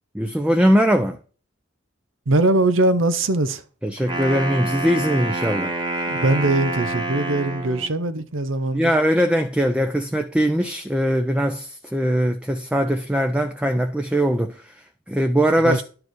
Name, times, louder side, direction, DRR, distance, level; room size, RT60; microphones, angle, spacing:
voice 1, 0.1-1.2 3.8-5.7 8.7-15.8, equal, 5° right, 0.5 m, -21 dB
voice 2, 2.3-3.6 6.1-8.9 15.6-15.8, right 2 dB, 80° right, 0.7 m, -21 dB
Wind instrument woodwind instrument, 4.0-7.9, right 2 dB, 25° right, 1.4 m, -27 dB
11.0 x 4.8 x 4.6 m
head